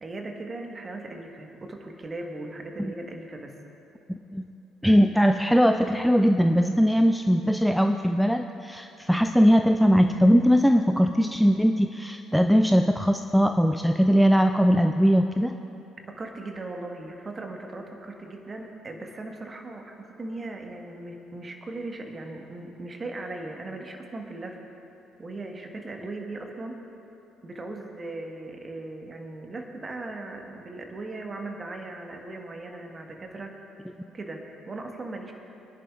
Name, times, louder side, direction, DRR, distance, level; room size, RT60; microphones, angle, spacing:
voice 1, 0.0-3.6 16.2-24.6 25.2-26.8 27.4-33.6 34.1-35.3, right 2 dB, 30° right, 3 dB, 1.4 m, -38 dB
voice 2, 4.8-15.5, equal, ahead, 6 dB, 0.4 m, -20 dB
23.5 x 10.5 x 2.5 m, 2.9 s
figure-of-eight pair, 45°, 0 cm